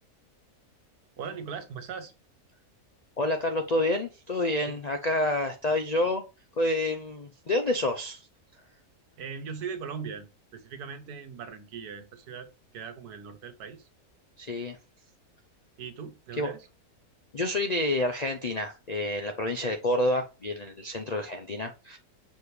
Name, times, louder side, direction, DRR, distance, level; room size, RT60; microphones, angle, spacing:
voice 1, 1.2-2.1 4.7-4.8 9.2-12.5 12.7-13.9 15.8-16.7, right 6 dB, 85° right, 1.5 m, -39 dB
voice 2, 3.2-6.2 6.6-8.3 14.4-14.8 16.4-16.5 17.3-22.0, left 1 dB, 60° left, 0.4 m, -28 dB
6.7 x 4.8 x 3.2 m
omnidirectional pair, 1.6 m